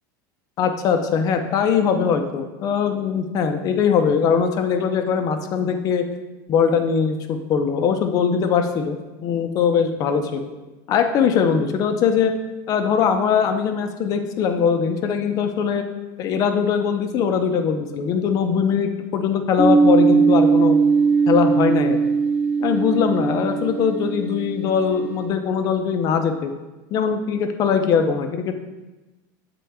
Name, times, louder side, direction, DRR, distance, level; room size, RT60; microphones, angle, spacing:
voice 1, 0.6-6.0 6.5-10.5 10.9-12.3 12.7-15.8 16.2-20.8 21.3-22.0 22.6-26.5 26.9-28.5, left 6 dB, 35° left, 7 dB, 0.6 m, -21 dB
sound 1, 19.6-25.1, right 5 dB, 15° right, 0.8 m, -19 dB
7.8 x 3.7 x 3.4 m, 1.1 s
supercardioid pair, 150°, 10 cm